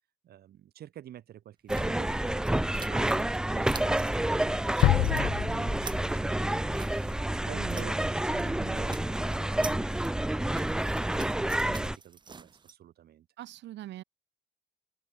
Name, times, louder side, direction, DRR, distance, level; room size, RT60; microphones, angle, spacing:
voice 1, 0.2-10.8 11.3-13.3, right 11 dB, 60° right, 2.4 m, -49 dB
Shopping -- At The Check out --, 1.7-12.0, right 1 dB, 5° right, 0.4 m, -29 dB
sound 1, 1.7-3.4 3.6-4.2 4.5-5.3 5.6-8.1 8.3-8.5 8.8-12.7, right 5 dB, 25° right, 2.2 m, -47 dB
sound 2, 4.8-6.7, left 17 dB, 80° left, 0.5 m, -27 dB
voice 2, 7.5-7.9 8.3-8.5 13.4-14.0, right 14 dB, 75° right, 1.9 m, -43 dB
open air
cardioid pair, 160°, 19 cm